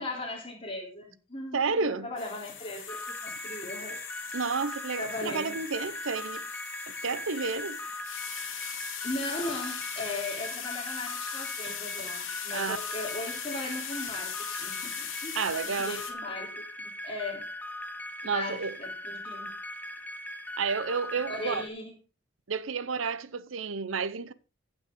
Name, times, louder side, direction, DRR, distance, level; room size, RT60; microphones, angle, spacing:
voice 1, 0.0-4.0 5.0-5.6 9.0-16.5 17.0-17.5 18.2-19.5 21.2-22.0, left 2 dB, 30° left, 3.3 m, -38 dB
voice 2, 1.5-2.1 4.3-6.5 6.9-7.8 12.5-12.8 15.4-16.0 18.2-18.8 20.6-21.6 22.5-24.3, right 5 dB, 90° right, 0.7 m, -31 dB
sound 1, 2.2-16.1, left 8 dB, 80° left, 1.9 m, -39 dB
sound 2, 2.9-21.7, left 1 dB, 10° left, 0.7 m, -40 dB
15.0 x 6.2 x 3.7 m
head